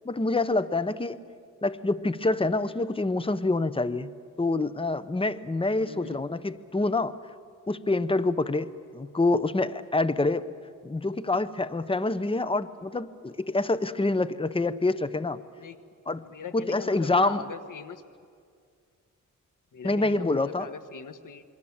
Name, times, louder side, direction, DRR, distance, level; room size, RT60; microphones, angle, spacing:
voice 1, 0.0-1.2 1.6-4.1 4.4-7.1 7.7-10.5 10.8-15.4 16.1-16.2 16.5-17.5 19.8-20.7, left 2 dB, 15° left, 14 dB, 0.8 m, -26 dB
voice 2, 5.8-6.2 15.6-15.8 16.2-18.0 19.7-21.4, left 6 dB, 70° left, 10 dB, 1.4 m, -41 dB
27.5 x 23.0 x 7.3 m, 2.2 s
cardioid pair, 80°, 33 cm